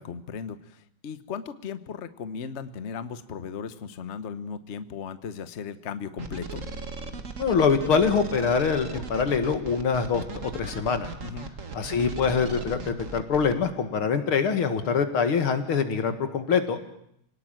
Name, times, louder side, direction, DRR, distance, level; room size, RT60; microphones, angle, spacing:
voice 1, 0.0-6.6 11.2-11.5, left 6 dB, 40° left, 11 dB, 1.1 m, -36 dB
sound 1, 6.2-13.5, right 3 dB, 40° right, 2.0 m, -37 dB
voice 2, 7.4-11.1 11.7-16.8, left 6 dB, 80° left, 8 dB, 2.8 m, -24 dB
27.0 x 18.5 x 9.0 m, 0.75 s
omnidirectional pair, 2.3 m